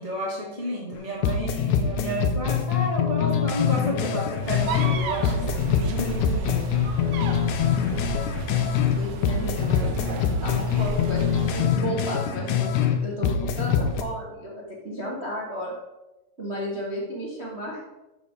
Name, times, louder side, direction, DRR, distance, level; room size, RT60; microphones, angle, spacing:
voice 1, 0.0-6.6, equal, 30° left, -4 dB, 0.6 m, -31 dB
sound 1, 0.9-1.0 1.2-5.0 5.2-9.0 9.2-13.0 13.2-14.0, left 8 dB, 75° left, 2.1 m, -24 dB
sound 2, 4.4-11.7, right 4 dB, 80° right, 2.6 m, -33 dB
voice 2, 8.9-9.9 10.4-15.7 16.4-17.8, right 1 dB, 50° right, -4 dB, 0.7 m, -33 dB
12.5 x 4.4 x 5.0 m, 1.0 s
omnidirectional pair, 3.7 m